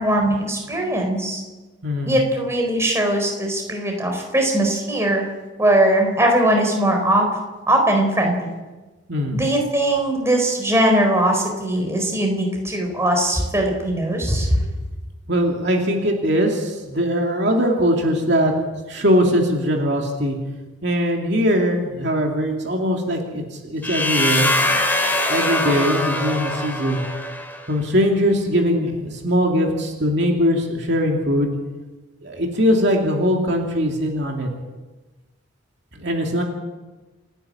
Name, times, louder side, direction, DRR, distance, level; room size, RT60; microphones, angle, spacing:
voice 1, 0.0-1.4 2.1-5.3 5.6-7.3 7.7-8.5 9.3-14.6, right 1 dB, 15° right, 2 dB, 4.4 m, -20 dB
voice 2, 1.8-2.1 9.1-9.4 15.3-18.5 18.9-20.4 20.8-23.4 23.7-24.5 25.3-27.0 27.7-31.5 32.2-34.5 36.0-36.4, equal, 55° right, 1 dB, 2.7 m, -21 dB
sound 1, 23.8-27.7, left 1 dB, 10° left, 2.4 m, -22 dB
29.0 x 11.0 x 8.7 m, 1.2 s
head